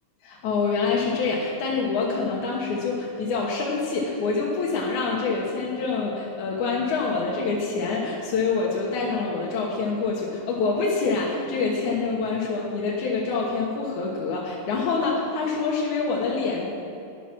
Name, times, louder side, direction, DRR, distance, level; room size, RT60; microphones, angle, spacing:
voice 1, 0.2-16.7, left 4 dB, 85° left, -3 dB, 2.6 m, -26 dB
12.0 x 9.1 x 6.0 m, 2.6 s
omnidirectional pair, 3.4 m